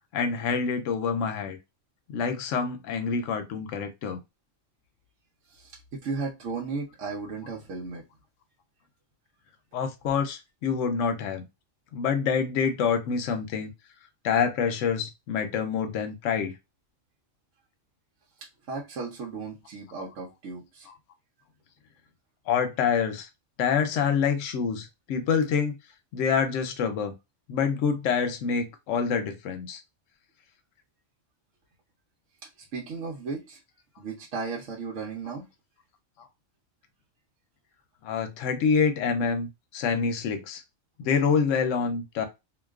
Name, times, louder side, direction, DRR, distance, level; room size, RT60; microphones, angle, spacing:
voice 1, 0.1-1.6 2.1-4.2 9.7-11.5 11.9-13.7 14.2-16.6 22.5-23.3 23.6-25.7 26.1-27.1 27.5-29.8 38.0-39.5 39.7-40.6 41.0-42.3, left 6 dB, 85° left, 0.9 m, -26 dB
voice 2, 5.5-8.0 18.4-20.9 32.7-33.6 34.0-35.5, right 4 dB, 80° right, 1.0 m, -35 dB
2.5 x 2.2 x 2.3 m
omnidirectional pair, 1.3 m